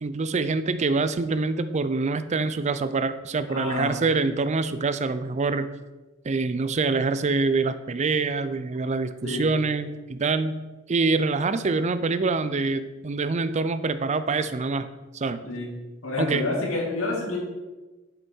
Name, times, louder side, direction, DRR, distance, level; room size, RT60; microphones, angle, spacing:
voice 1, 0.0-5.7 6.2-10.6 10.9-14.9 15.1-15.4 16.2-16.4, right 3 dB, 35° right, 12 dB, 0.4 m, -25 dB
voice 2, 3.5-4.0 9.2-9.5 15.4-15.7 16.0-17.4, left 2 dB, 80° left, -1 dB, 2.2 m, -28 dB
8.4 x 6.7 x 4.4 m, 1.2 s
head